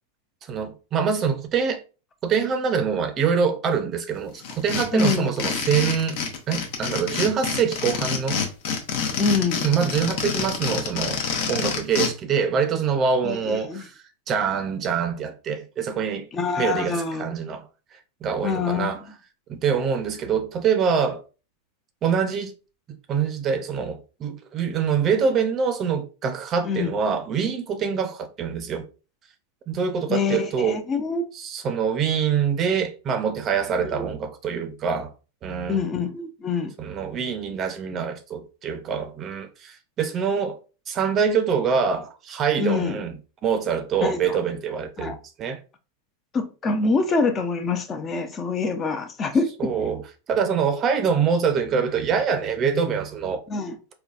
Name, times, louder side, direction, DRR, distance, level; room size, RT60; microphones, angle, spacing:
voice 1, 0.4-1.8 2.2-6.2 6.5-8.4 9.6-11.2 11.5-13.9 14.3-16.3 16.6-17.7 18.2-19.0 19.5-21.2 22.0-22.5 23.1-28.8 29.7-30.8 31.3-35.1 35.4-35.8 36.8-40.6 40.9-43.1 43.4-45.6 49.6-50.0 50.3-53.4, right 6 dB, 35° right, 0.5 m, -25 dB
sound 1, 4.4-12.1, left 6 dB, 60° left, 0.8 m, -27 dB
voice 2, 4.9-5.5 9.2-9.6 13.2-13.8 16.3-17.2 18.4-18.9 26.6-26.9 30.1-31.3 33.8-34.0 35.7-36.7 42.6-43.0 44.0-44.4 45.0-45.2 46.3-49.9 53.5-53.8, left 4 dB, 25° left, 0.5 m, -25 dB
3.8 x 2.2 x 2.4 m
hypercardioid pair, 105°, 0 cm